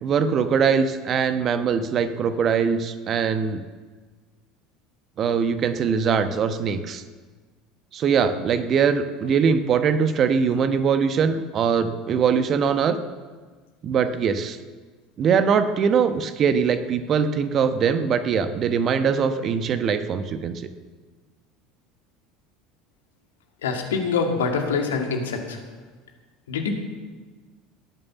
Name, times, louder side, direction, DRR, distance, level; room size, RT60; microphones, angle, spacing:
voice 1, 0.0-3.6 5.2-7.0 7.9-13.0 13.8-14.6 15.2-20.7, right 6 dB, 40° right, 10 dB, 1.1 m, -22 dB
voice 2, 23.6-25.6 26.5-26.7, left 5 dB, 75° left, 2 dB, 2.4 m, -25 dB
18.5 x 8.9 x 7.2 m, 1.4 s
figure-of-eight pair, 70°, 0 cm